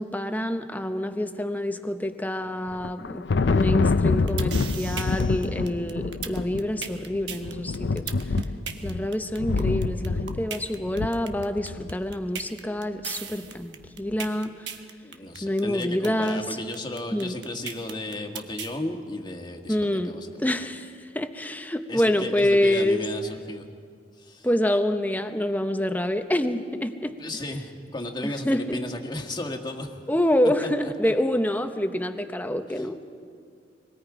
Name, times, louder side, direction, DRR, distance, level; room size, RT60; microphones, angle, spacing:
voice 1, 0.0-8.1 8.8-14.5 15.4-16.4 17.1-17.4 19.7-23.0 24.4-27.2 28.2-28.8 30.1-33.0, left 1 dB, 10° left, 8 dB, 0.8 m, -27 dB
Thunder, 2.7-12.1, left 3 dB, 75° left, 0.5 m, -26 dB
sound 1, 4.0-18.7, right 7 dB, 85° right, 1.2 m, -37 dB
voice 2, 15.0-19.8 20.0-20.3 21.9-23.7 24.2-24.5 27.2-30.0 30.8-31.1 32.7-32.9, left 1 dB, 25° left, 3 dB, 1.5 m, -34 dB
25.5 x 21.0 x 4.9 m, 2.2 s
head